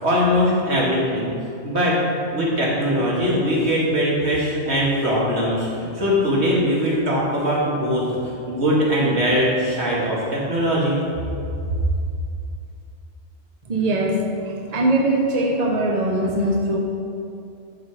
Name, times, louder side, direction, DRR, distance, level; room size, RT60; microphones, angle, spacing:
voice 1, 0.0-1.3 1.6-1.9 2.3-11.0, equal, 70° right, -5 dB, 2.5 m, -21 dB
voice 2, 13.7-16.8, right 1 dB, 35° right, 0 dB, 1.0 m, -21 dB
11.5 x 7.1 x 4.9 m, 2.5 s
omnidirectional pair, 1.2 m